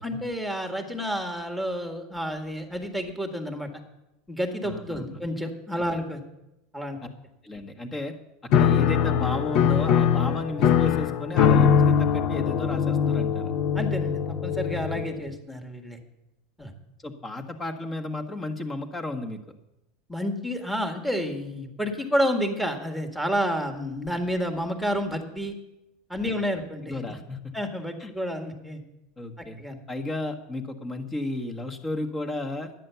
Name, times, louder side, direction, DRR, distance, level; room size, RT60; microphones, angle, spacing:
voice 1, 0.0-3.7 4.3-6.2 6.7-7.0 13.7-16.0 16.6-16.7 20.1-25.5 26.1-27.0 27.5-28.8 29.4-29.8, equal, ahead, 4 dB, 1.8 m, -30 dB
voice 2, 4.6-5.2 5.7-6.0 7.4-8.2 8.5-13.5 17.0-19.4 26.8-27.5 28.0-28.1 29.2-29.6 29.9-32.7, left 2 dB, 20° left, 5 dB, 1.6 m, -33 dB
Piano, 8.5-15.3, left 8 dB, 55° left, 0.8 m, -22 dB
10.5 x 9.3 x 7.0 m, 0.93 s
supercardioid pair, 120°, 0 cm